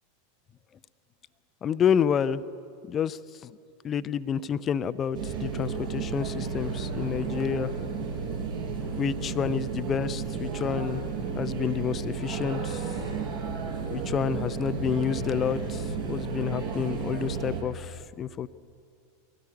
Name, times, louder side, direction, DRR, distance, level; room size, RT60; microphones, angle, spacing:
voice 1, 1.6-2.4 2.9-3.2 3.8-7.7 8.9-11.0 11.3-12.8 13.9-18.5, left 8 dB, 30° left, 14 dB, 0.7 m, -29 dB
sound 1, 5.1-17.6, right 5 dB, 60° right, 5.5 m, -32 dB
23.0 x 17.5 x 9.7 m, 2.3 s
figure-of-eight pair, 85°, 0 cm